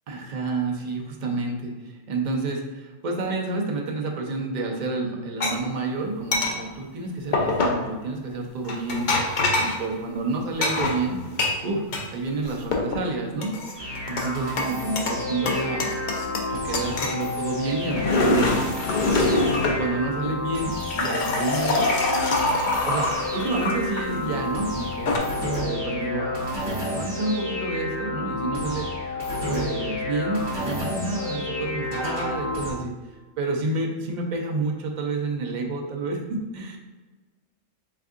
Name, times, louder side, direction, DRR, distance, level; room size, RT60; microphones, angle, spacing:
voice 1, 0.1-11.2 11.6-16.0 16.5-18.6 19.0-19.4 19.7-21.9 22.8-29.1 29.4-32.9 33.4-36.8, right 3 dB, 55° right, 0 dB, 0.5 m, -29 dB
sound 1, 5.4-5.5 6.3-6.6 7.3-7.8 8.7-9.8 10.6-12.1 12.4-13.0 13.4-14.3 14.6-15.2 15.5-16.5 16.7-17.2 17.7-19.8 20.6-24.0 24.8-25.2, left 2 dB, 75° left, 0.4 m, -24 dB
sound 2, 13.8-32.7, left 2 dB, 15° right, 1.4 m, -30 dB
4.4 x 3.5 x 2.4 m, 1.3 s
omnidirectional pair, 1.5 m